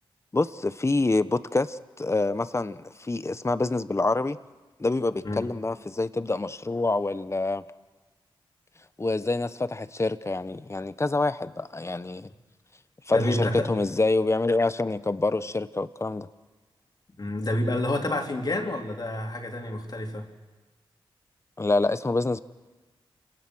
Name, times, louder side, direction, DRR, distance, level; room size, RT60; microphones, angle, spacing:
voice 1, 0.3-4.4 4.8-7.6 9.0-12.3 13.1-16.3 21.6-22.4, left 2 dB, 30° left, 14 dB, 1.0 m, -26 dB
voice 2, 13.1-13.7 17.2-20.3, left 1 dB, 45° left, 2 dB, 3.4 m, -28 dB
28.0 x 18.5 x 6.3 m, 1.2 s
cardioid pair, 50°, 10 cm